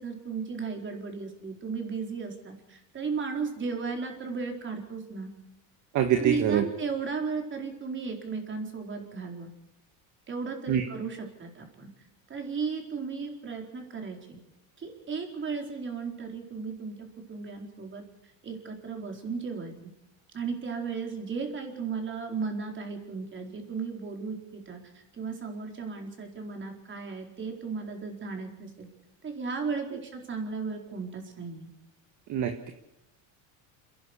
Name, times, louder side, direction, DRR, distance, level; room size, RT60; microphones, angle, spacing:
voice 1, 0.0-5.3 6.2-9.5 10.3-11.9 12.3-14.4 14.8-17.0 17.3-18.0 18.4-19.7 20.3-28.9 29.2-31.7, right 5 dB, 30° right, 3 dB, 4.4 m, -35 dB
voice 2, 5.9-6.6 10.7-10.8 32.3-32.7, right 9 dB, 45° right, 6 dB, 1.7 m, -25 dB
28.5 x 11.0 x 8.4 m, 0.85 s
supercardioid pair, 125°, 40 cm